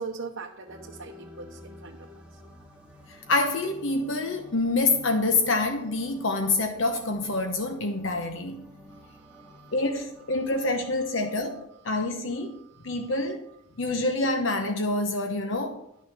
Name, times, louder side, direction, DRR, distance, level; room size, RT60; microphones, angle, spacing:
voice 1, 0.0-2.4 8.9-9.7 12.0-12.1 12.5-13.1, right 4 dB, 75° right, 1.0 m, -42 dB
sound 1, 0.7-10.9, left 1 dB, 5° right, 1.3 m, -50 dB
voice 2, 3.1-8.7 9.7-12.6 12.8-13.5 13.8-15.8, left 2 dB, 70° left, 1.0 m, -27 dB
12.0 x 6.3 x 6.7 m
head